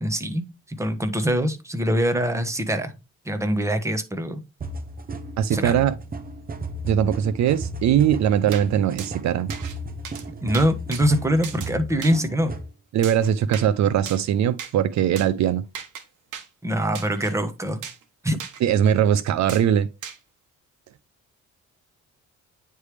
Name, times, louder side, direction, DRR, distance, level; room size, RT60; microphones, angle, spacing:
voice 1, 0.0-2.9 3.2-4.4 5.5-5.8 10.4-12.5 16.6-17.8 18.2-18.4, equal, 10° right, 1.1 m, -24 dB
sound 1, 4.6-12.7, right 1 dB, 30° right, 0.8 m, -34 dB
voice 2, 5.4-5.9 6.9-9.5 12.9-15.6 18.6-19.9, right 9 dB, 65° right, 0.5 m, -21 dB
sound 2, 8.5-8.7 9.0-9.1 9.5-9.8 10.0-10.2 10.5-11.0 11.4-11.7 12.0-12.2 13.0-13.7 14.1-14.2 14.6-14.7 15.2-15.3 15.7-16.0 16.3-16.5 16.9-17.3 17.8-18.0 18.4-18.6 19.5-19.6 20.0-20.2, right 8 dB, 85° right, 1.2 m, -36 dB
9.3 x 3.4 x 3.3 m
cardioid pair, 90°, 30 cm